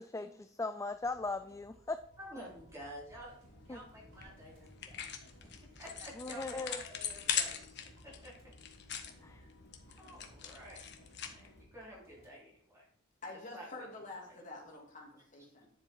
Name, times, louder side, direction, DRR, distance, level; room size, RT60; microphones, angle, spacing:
voice 1, 0.0-2.0 3.7-3.8 6.2-6.8 9.2-9.4, left 3 dB, 15° left, 10 dB, 0.4 m, -38 dB
sound 1, 0.9-12.3, right 1 dB, 80° right, 4.1 m, -64 dB
sound 2, 1.6-5.8, right 1 dB, 60° right, 3.0 m, -64 dB
voice 2, 2.2-3.3 3.7-5.0 5.4-8.3 9.4-9.5 10.0-10.8 11.2-12.8 13.5-13.8 14.3-14.4, equal, 15° right, -4 dB, 4.4 m, -51 dB
sound 3, 3.4-11.6, left 8 dB, 55° left, 1.4 m, -42 dB
voice 3, 13.2-15.7, left 2 dB, 40° left, -1 dB, 3.1 m, -47 dB
10.5 x 7.4 x 4.7 m, 0.65 s
head